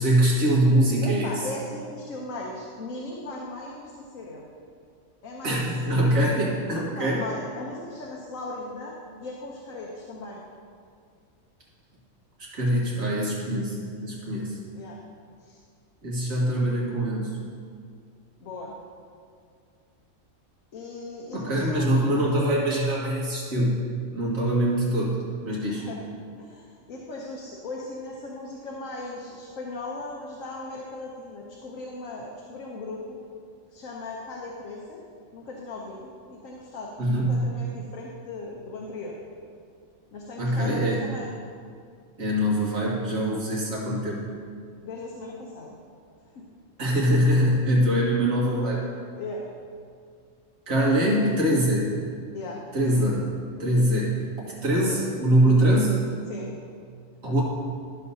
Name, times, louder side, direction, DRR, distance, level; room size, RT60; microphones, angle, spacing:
voice 1, 0.0-1.4 5.4-7.2 12.5-14.6 16.0-17.3 21.3-23.8 24.1-25.9 37.0-37.4 40.4-41.0 42.2-44.2 46.8-48.9 50.7-51.9 52.7-53.2 53.6-54.2 54.6-55.9 57.2-57.4, right 1 dB, 90° right, -5 dB, 2.2 m, -23 dB
voice 2, 1.0-4.4 5.2-5.7 7.0-10.4 14.7-15.0 15.4-15.6 18.4-18.7 20.7-21.9 25.7-26.1 26.3-33.2 33.7-35.0 35.3-39.1 40.1-41.3 44.8-45.8 46.3-46.5 49.1-49.4 52.3-52.6 52.9-53.1 54.7-55.0 55.4-55.8 56.3-56.5, left 2 dB, 80° left, -2 dB, 1.3 m, -38 dB
13.0 x 6.8 x 2.8 m, 2.2 s
omnidirectional pair, 1.4 m